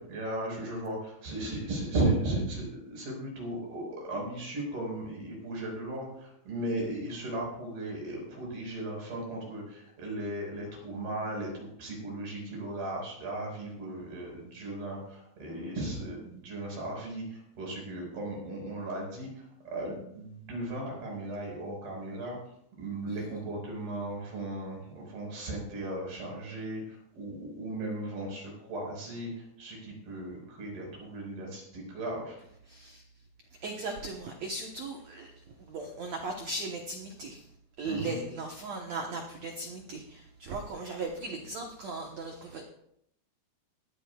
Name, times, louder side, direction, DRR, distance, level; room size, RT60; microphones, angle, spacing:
voice 1, 0.0-22.4 22.8-32.4 37.9-38.2, right 1 dB, 60° right, -1 dB, 6.7 m, -36 dB
voice 2, 32.7-33.0 33.6-37.4 37.8-42.6, right 3 dB, 80° right, 2 dB, 1.5 m, -38 dB
20.0 x 14.0 x 2.4 m, 0.74 s
omnidirectional pair, 5.0 m